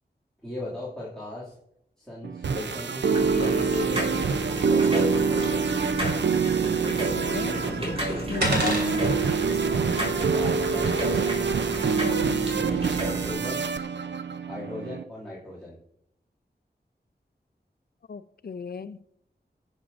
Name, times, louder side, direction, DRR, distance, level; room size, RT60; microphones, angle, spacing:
voice 1, 0.4-1.5 2.0-4.4 4.6-5.7 7.4-8.0 10.3-11.2 12.4-13.6 14.5-15.8, left 1 dB, 5° left, -8 dB, 2.3 m, -38 dB
sound 1, 2.2-15.0, right 5 dB, 90° right, 0.5 m, -26 dB
sound 2, 3.1-13.3, equal, 35° right, 3.8 m, -32 dB
voice 2, 6.8-7.6 8.3-9.0 12.0-12.4 18.1-19.0, left 5 dB, 60° left, 13 dB, 0.5 m, -35 dB
sound 3, 7.2-12.7, right 1 dB, 75° right, 3.1 m, -35 dB
18.0 x 7.2 x 2.5 m, 0.76 s
wide cardioid pair, 85°, 18 cm